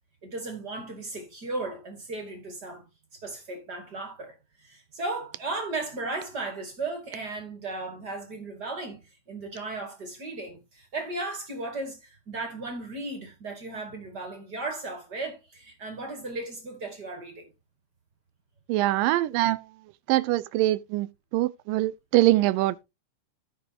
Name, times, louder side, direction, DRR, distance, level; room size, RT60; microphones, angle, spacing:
voice 1, 0.2-2.8 3.2-4.3 4.6-9.0 9.3-17.5, right 2 dB, 30° right, 2.5 m, -35 dB
voice 2, 18.7-19.6 20.1-21.1 21.3-22.8, right 16 dB, 80° right, 2.2 m, -23 dB
15.5 x 6.3 x 2.9 m
omnidirectional pair, 4.1 m